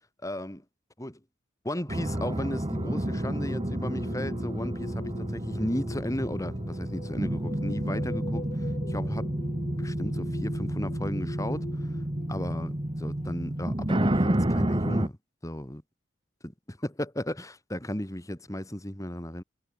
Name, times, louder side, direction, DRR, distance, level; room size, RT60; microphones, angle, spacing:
voice 1, 0.2-0.6 1.0-1.2 1.6-9.3 9.8-11.7 12.3-12.7 13.0-15.2 15.4-15.8 16.4-19.4, left 1 dB, 15° left, 2.7 m, -35 dB
sound 1, 1.9-15.1, right 1 dB, 25° right, 1.5 m, -30 dB
sound 2, 2.7-13.7, left 2 dB, 35° left, 1.1 m, -43 dB
head